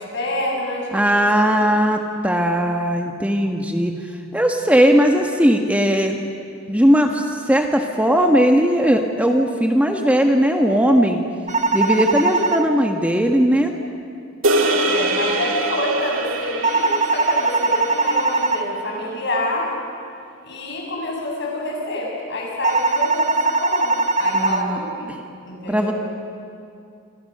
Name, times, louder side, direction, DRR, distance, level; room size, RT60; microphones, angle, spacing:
voice 1, 0.0-0.9 1.4-1.6 11.8-12.2 14.6-19.7 20.4-25.1 25.5-25.9, left 1 dB, 60° left, -1 dB, 7.5 m, -27 dB
voice 2, 0.9-3.9 4.3-6.2 6.7-11.2 11.7-13.7 24.3-24.8 25.7-25.9, equal, 5° right, 3 dB, 1.4 m, -18 dB
sound 1, 11.5-12.6 16.6-18.6 22.6-24.6, right 3 dB, 35° right, 1.5 m, -20 dB
sound 2, 14.4-18.9, right 2 dB, 80° right, 2.1 m, -24 dB
28.0 x 26.5 x 6.7 m, 2.4 s
head